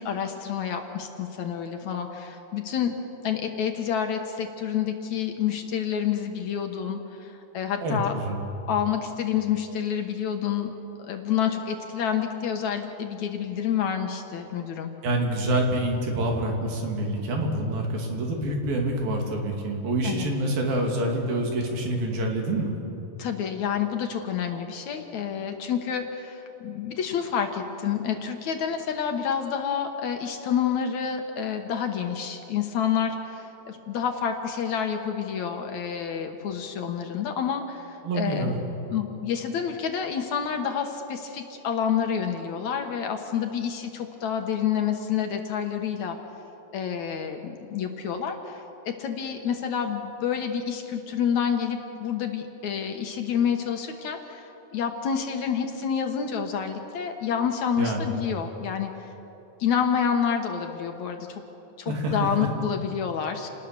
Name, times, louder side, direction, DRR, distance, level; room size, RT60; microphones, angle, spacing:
voice 1, 0.0-3.0 3.2-8.1 8.7-10.7 11.0-14.9 20.0-20.3 23.2-38.5 38.9-46.2 46.7-59.1 59.6-61.4 61.8-63.5, left 8 dB, 65° left, 5 dB, 2.3 m, -28 dB
voice 2, 7.8-8.4 15.0-22.7 38.0-38.6 57.8-58.1 61.9-62.5, right 1 dB, 80° right, 1 dB, 4.5 m, -27 dB
28.5 x 19.0 x 6.8 m, 3.0 s
omnidirectional pair, 4.1 m